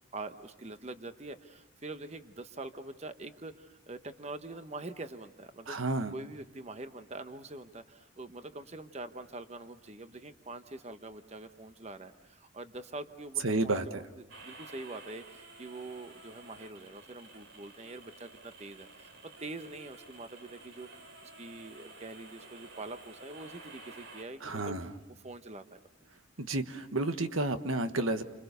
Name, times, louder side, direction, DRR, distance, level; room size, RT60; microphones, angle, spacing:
voice 1, 0.1-5.8 6.1-19.1 19.4-24.9 25.2-26.1, right 2 dB, 30° right, 9 dB, 0.9 m, -44 dB
voice 2, 5.7-6.1 13.4-14.0 24.4-24.9 26.4-28.2, right 2 dB, 85° right, 9 dB, 1.4 m, -31 dB
sound 1, 14.3-24.2, right 3 dB, 65° right, 3.2 m, -52 dB
29.5 x 26.0 x 6.8 m, 0.99 s
head